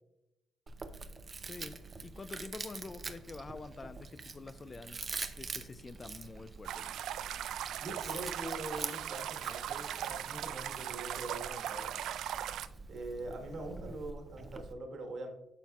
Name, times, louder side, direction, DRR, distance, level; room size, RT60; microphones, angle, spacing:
Chewing mastication, 0.7-14.7, right 4 dB, 35° right, 0.6 m, -46 dB
voice 1, 1.5-5.0 5.4-6.9, left 3 dB, 30° left, 0.4 m, -47 dB
sound 1, 6.6-12.7, right 10 dB, 80° right, 0.3 m, -39 dB
voice 2, 7.8-11.9 12.9-15.3, right 2 dB, 60° right, 1.4 m, -43 dB
8.9 x 5.7 x 2.4 m
cardioid pair, 90°, 0 cm